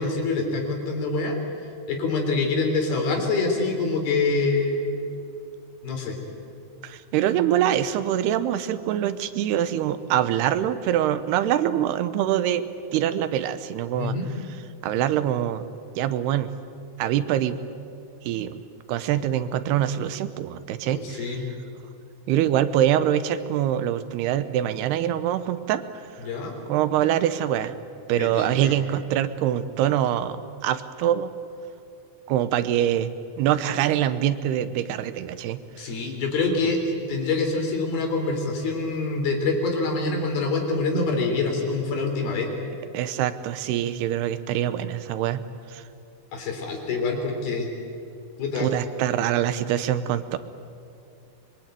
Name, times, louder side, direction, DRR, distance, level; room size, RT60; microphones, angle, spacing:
voice 1, 0.0-1.4 1.9-4.9 5.8-6.2 14.0-14.3 20.9-21.4 26.2-26.6 28.1-28.8 35.8-36.8 37.1-42.5 46.3-47.7 48.4-48.7, left 3 dB, 70° left, 2 dB, 5.4 m, -25 dB
voice 2, 6.8-12.7 12.9-14.2 14.8-15.6 16.0-16.5 17.0-17.6 18.2-18.5 18.9-21.4 22.3-25.8 26.7-27.7 28.1-31.3 32.3-33.1 33.4-35.9 42.9-45.4 45.7-45.8 48.6-50.4, right 11 dB, 85° right, 13 dB, 3.0 m, -24 dB
25.0 x 22.5 x 9.1 m, 2.6 s
omnidirectional pair, 4.5 m